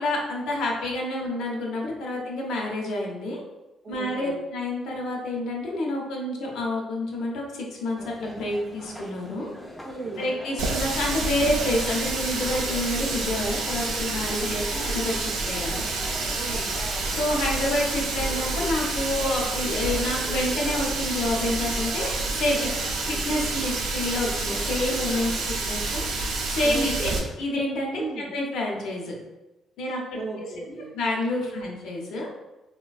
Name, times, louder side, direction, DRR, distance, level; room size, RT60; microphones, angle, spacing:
voice 1, 0.0-3.4 3.9-9.5 10.2-15.8 17.1-22.7 23.2-26.0 26.5-27.1 27.4-29.1 29.8-30.2 30.9-32.3, left 1 dB, 85° left, -1 dB, 0.6 m, -28 dB
voice 2, 3.8-4.4 9.8-10.3 14.5-14.9 16.4-16.7 26.6-27.3 28.0-28.3 30.1-30.9 31.5-31.6, right 3 dB, 40° right, -3 dB, 0.6 m, -36 dB
sound 1, 8.0-25.5, equal, 10° left, 0.4 m, -42 dB
Water tap faucet, 10.6-27.2, right 3 dB, 90° right, 0.4 m, -28 dB
3.2 x 2.1 x 2.3 m, 1.0 s
cardioid pair, 90°, 0 cm